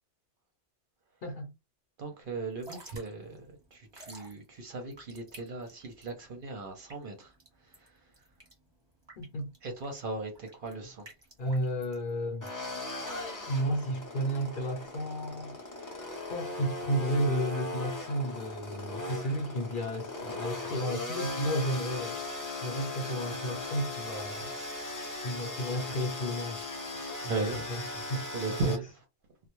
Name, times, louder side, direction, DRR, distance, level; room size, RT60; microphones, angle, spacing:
voice 1, 2.0-7.3 7.6-8.1 9.6-11.1 27.1-27.6 28.3-28.9, right 3 dB, 55° right, 0.7 m, -37 dB
Drip / Trickle dribble, 2.5-14.1, right 2 dB, 25° right, 0.8 m, -54 dB
voice 2, 9.2-9.5 11.4-12.5 13.5-15.5 16.3-22.2 22.6-24.5 25.2-26.6 27.2-28.7, equal, 55° left, 0.8 m, -33 dB
sound 1, 12.4-28.8, left 2 dB, 25° left, 0.4 m, -38 dB
2.2 x 2.0 x 2.9 m
omnidirectional pair, 1.2 m